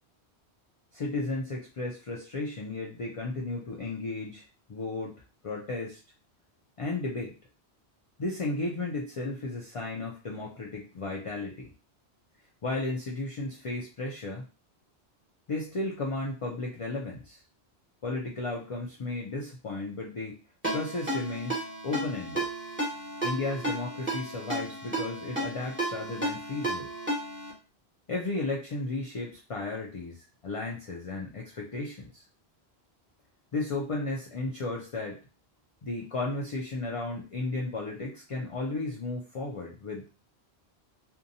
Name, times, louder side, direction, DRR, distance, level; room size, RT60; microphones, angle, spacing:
voice 1, 0.9-6.0 6.8-7.3 8.2-11.7 12.6-14.4 15.5-17.4 18.0-20.4 20.7-22.5 23.2-26.9 28.1-32.2 33.5-35.2 35.8-40.2, left 2 dB, 60° left, -1 dB, 0.3 m, -34 dB
Ringtone, 20.6-27.5, right 1 dB, 10° right, 1.1 m, -33 dB
2.7 x 2.2 x 2.6 m, 0.34 s
omnidirectional pair, 1.1 m